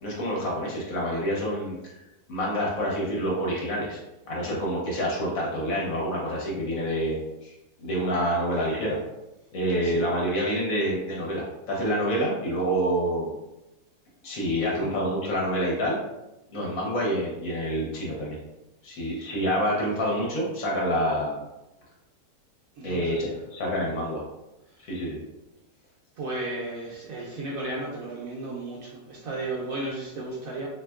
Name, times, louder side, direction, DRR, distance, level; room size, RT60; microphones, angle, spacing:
voice 1, 0.0-1.9 2.3-4.0 4.3-7.5 7.8-9.0 9.5-13.3 14.2-16.0 16.5-18.4 18.8-21.4 22.8-24.2 24.9-25.2, equal, 60° left, -4 dB, 1.0 m, -27 dB
voice 2, 18.9-19.3 22.8-23.4 24.8-24.9 26.2-30.7, right 2 dB, 70° right, -4 dB, 0.9 m, -34 dB
3.2 x 2.8 x 2.3 m, 0.96 s
omnidirectional pair, 1.9 m